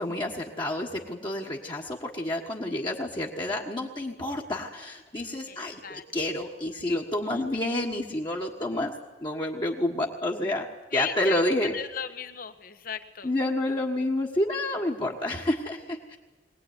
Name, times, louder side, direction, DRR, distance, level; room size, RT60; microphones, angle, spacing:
voice 1, 0.0-8.9 9.2-10.7 10.9-11.7 13.2-16.2, left 1 dB, 25° left, -1 dB, 1.5 m, -29 dB
voice 2, 5.5-6.0 7.2-7.4 10.9-13.3, left 8 dB, 55° left, 9 dB, 1.3 m, -36 dB
22.5 x 18.0 x 9.6 m, 1.2 s
head